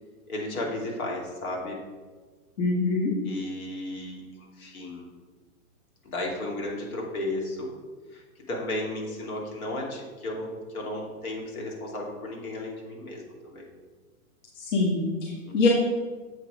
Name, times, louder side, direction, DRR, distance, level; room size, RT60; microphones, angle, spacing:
voice 1, 0.3-1.8 3.2-5.1 6.0-7.7 8.1-13.7, left 1 dB, 75° left, -1 dB, 2.8 m, -34 dB
voice 2, 2.6-3.1 14.6-15.7, left 3 dB, 55° left, -4 dB, 2.0 m, -24 dB
7.9 x 6.0 x 5.0 m, 1.4 s
hypercardioid pair, 150°, 43 cm